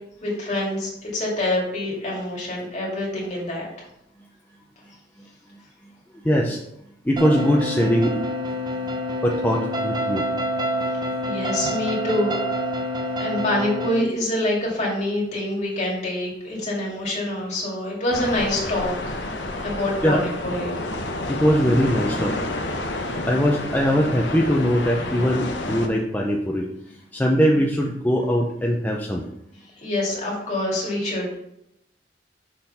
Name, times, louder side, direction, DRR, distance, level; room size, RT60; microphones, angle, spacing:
voice 1, 0.2-3.7 11.2-12.4 13.2-19.2 19.6-20.8 29.8-31.3, left 1 dB, 40° left, -3 dB, 2.4 m, -26 dB
voice 2, 6.2-6.6 7.0-8.2 9.2-10.2 20.0-20.2 21.3-22.4 23.3-26.7 27.1-29.2, equal, 10° left, -1 dB, 0.6 m, -21 dB
sound 1, 7.2-14.0, equal, 25° right, 0.7 m, -27 dB
sound 2, 18.1-25.9, left 1 dB, 80° left, 0.9 m, -29 dB
6.5 x 3.8 x 5.7 m, 0.80 s
head